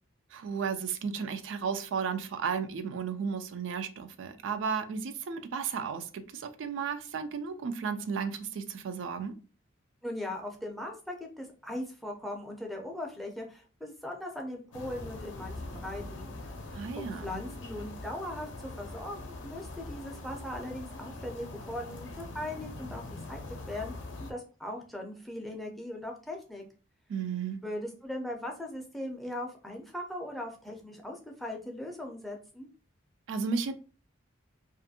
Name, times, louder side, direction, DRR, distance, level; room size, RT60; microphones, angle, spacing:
voice 1, 0.3-9.3 16.7-17.3 27.1-27.6 33.3-33.7, right 6 dB, 70° right, 0.3 m, -34 dB
voice 2, 10.0-16.5 17.0-23.4 23.7-23.9 24.2-26.6 27.6-32.7, left 1 dB, ahead, 0.4 m, -39 dB
sound 1, 14.7-24.3, left 2 dB, 65° left, 0.5 m, -43 dB
2.5 x 2.4 x 2.7 m
head